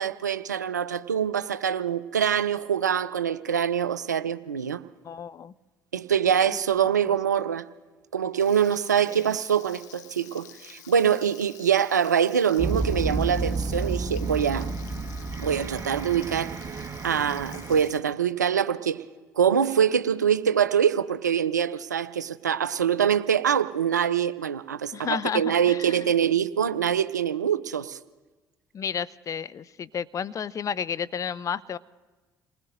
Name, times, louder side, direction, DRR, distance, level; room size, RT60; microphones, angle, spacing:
voice 1, 0.0-4.8 5.9-7.6 8.1-14.7 15.4-16.6 17.0-19.0 19.4-28.0, right 8 dB, 90° right, 15 dB, 0.4 m, -24 dB
voice 2, 5.0-5.5 6.4-6.6 7.1-7.2 9.1-9.3 24.9-26.1 28.7-31.8, left 7 dB, 35° left, 16 dB, 0.5 m, -32 dB
Frying (food), 8.4-18.0, left 11 dB, 80° left, 0.7 m, -49 dB
sound 1, 12.6-17.8, right 3 dB, 30° right, 1.4 m, -31 dB
28.5 x 19.5 x 2.6 m, 1.2 s
figure-of-eight pair, 55°, 9 cm